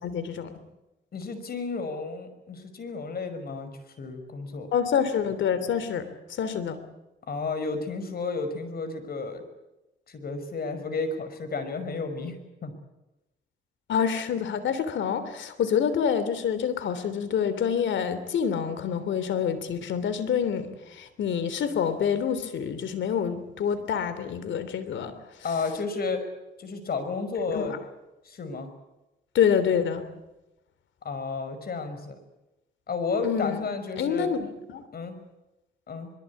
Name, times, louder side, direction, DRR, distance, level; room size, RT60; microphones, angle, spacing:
voice 1, 0.0-0.5 4.7-6.8 13.9-25.1 27.5-27.8 29.3-30.0 33.2-33.7 34.0-34.8, left 7 dB, 70° left, 12 dB, 3.2 m, -27 dB
voice 2, 1.1-4.7 7.3-9.4 10.1-12.4 12.6-12.7 25.4-26.2 26.6-27.8 28.2-28.7 31.0-32.2 32.9-34.3 34.9-35.2 35.9-36.1, left 4 dB, 50° left, 10 dB, 5.6 m, -32 dB
23.5 x 23.0 x 8.5 m, 0.97 s
cardioid pair, 90°, 20 cm